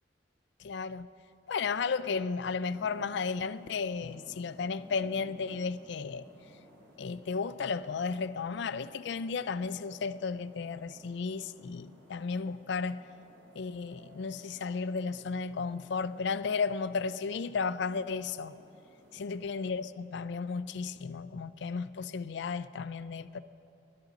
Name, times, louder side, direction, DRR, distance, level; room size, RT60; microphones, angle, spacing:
voice 1, 0.6-1.1 1.5-6.3 7.0-13.0 13.6-18.5 19.1-23.4, left 5 dB, 65° left, 0.4 m, -34 dB
sound 1, 2.4-19.9, equal, 65° right, 3.5 m, -58 dB
21.0 x 13.0 x 3.9 m
head